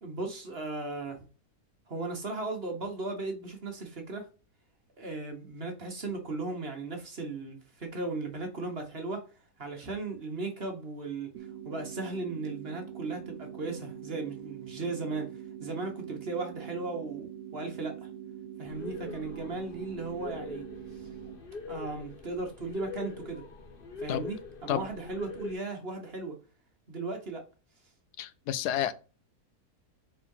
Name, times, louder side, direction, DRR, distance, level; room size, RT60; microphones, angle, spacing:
voice 1, 0.0-1.2 1.9-4.3 5.0-9.2 9.6-18.1 18.6-21.1 21.7-23.4 24.0-26.4 26.9-27.4, right 3 dB, 40° right, 1.4 m, -36 dB
sound 1, 11.3-21.3, right 9 dB, 80° right, 1.3 m, -44 dB
sound 2, 18.6-25.5, left 4 dB, 40° left, 1.0 m, -43 dB
voice 2, 28.2-28.9, left 11 dB, 80° left, 1.2 m, -30 dB
4.6 x 4.1 x 5.4 m
omnidirectional pair, 1.7 m